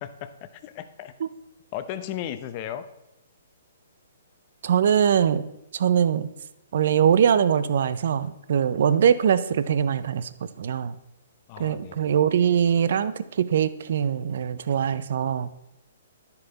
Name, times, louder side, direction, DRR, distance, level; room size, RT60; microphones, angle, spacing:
voice 1, 0.0-1.1 1.7-2.9 11.5-12.3, left 11 dB, 35° left, 11 dB, 0.7 m, -36 dB
voice 2, 4.6-5.4 5.7-6.3 6.7-10.3 10.6-10.9 11.6-15.5, right 8 dB, 60° right, 14 dB, 0.6 m, -22 dB
10.5 x 6.9 x 4.0 m, 0.89 s
hypercardioid pair, 150°, 0 cm